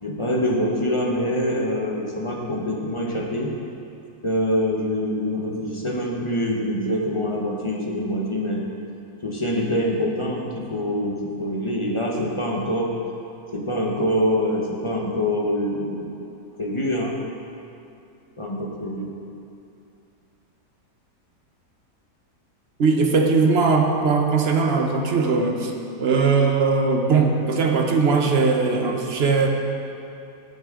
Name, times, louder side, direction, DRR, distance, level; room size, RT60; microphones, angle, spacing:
voice 1, 0.0-3.5 4.2-8.6 9.2-12.9 13.5-16.1 16.6-17.2 18.4-19.1, equal, 25° left, -2 dB, 0.8 m, -25 dB
voice 2, 22.8-25.7 26.0-29.5, right 4 dB, 45° right, 2 dB, 1.0 m, -20 dB
18.0 x 6.6 x 3.7 m, 2.7 s
omnidirectional pair, 1.7 m